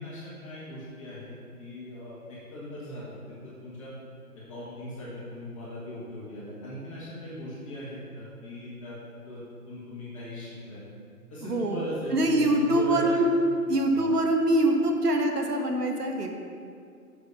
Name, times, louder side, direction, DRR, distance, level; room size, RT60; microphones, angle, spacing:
voice 1, 0.0-3.1 3.4-3.9 4.5-9.0 9.3-10.8 11.3-13.3 13.9-14.1, left 1 dB, 20° left, -8 dB, 1.6 m, -39 dB
voice 2, 11.4-11.8 12.1-13.3 13.7-16.3, right 1 dB, 85° right, 3 dB, 1.5 m, -24 dB
7.7 x 6.6 x 5.5 m, 2.4 s
hypercardioid pair, 160°, 46 cm